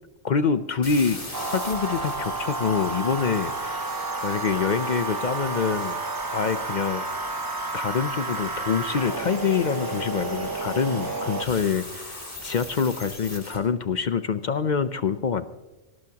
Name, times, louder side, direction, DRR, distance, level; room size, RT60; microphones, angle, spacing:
voice 1, 0.2-1.2 1.5-3.8 4.2-6.0 6.3-7.1 7.7-15.5, left 6 dB, 55° left, 11 dB, 0.5 m, -26 dB
sound 1, 0.8-13.6, left 1 dB, 25° left, 2.9 m, -40 dB
sound 2, 1.3-11.4, right 3 dB, 30° right, 0.4 m, -31 dB
19.0 x 18.5 x 2.9 m, 1.1 s
omnidirectional pair, 1.4 m